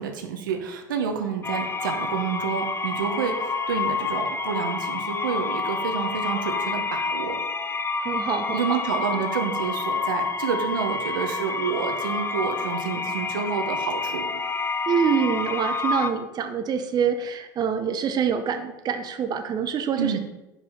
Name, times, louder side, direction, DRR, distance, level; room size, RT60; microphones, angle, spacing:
voice 1, 0.0-3.3 3.7-7.4 8.5-14.4 20.0-20.2, right 6 dB, 85° right, 4 dB, 0.9 m, -29 dB
sound 1, 1.4-16.1, left 4 dB, 20° left, 0.5 m, -28 dB
voice 2, 8.0-8.6 14.9-20.2, right 7 dB, 40° right, 7 dB, 0.8 m, -25 dB
5.4 x 5.0 x 5.4 m, 1.0 s
hypercardioid pair, 80°, 11 cm